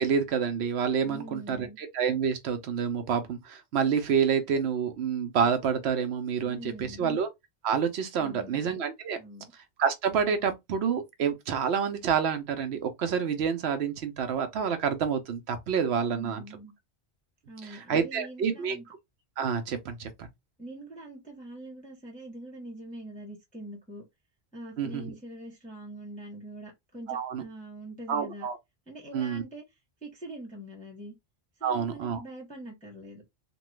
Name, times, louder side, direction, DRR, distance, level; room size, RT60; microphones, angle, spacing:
voice 1, 0.0-7.3 7.6-9.2 9.8-16.4 17.9-18.8 19.4-20.3 24.8-25.0 27.1-27.4 28.1-28.6 29.1-29.4 31.6-32.2, right 7 dB, 70° right, 0.9 m, -28 dB
voice 2, 1.0-1.8 6.4-7.1 8.1-8.6 9.2-9.5 16.1-16.7 17.5-18.8 20.6-24.1 24.5-28.5 28.9-29.6 30.0-31.1 31.6-33.2, right 1 dB, 10° left, 0.7 m, -44 dB
3.0 x 2.2 x 3.0 m
omnidirectional pair, 1.1 m